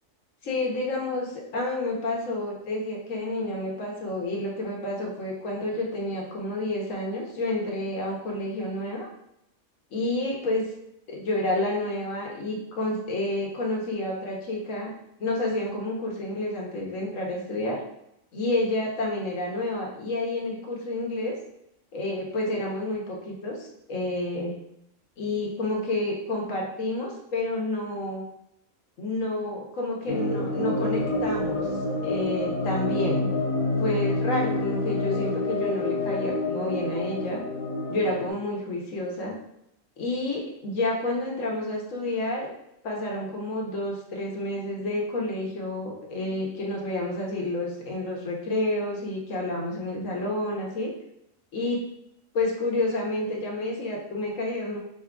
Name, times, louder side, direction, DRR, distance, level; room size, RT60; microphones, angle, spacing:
voice 1, 0.4-9.1 9.9-10.7 11.1-14.9 15.2-17.8 18.3-21.4 21.9-24.5 25.2-28.2 29.0-31.7 32.0-33.3 33.8-37.4 37.9-39.3 40.0-42.5 42.8-50.9 51.5-51.8 52.3-54.8, left 2 dB, 75° left, -1 dB, 1.4 m, -29 dB
sound 1, 30.1-38.3, left 2 dB, 55° left, 0.8 m, -28 dB
4.9 x 2.3 x 3.7 m, 0.79 s
omnidirectional pair, 1.4 m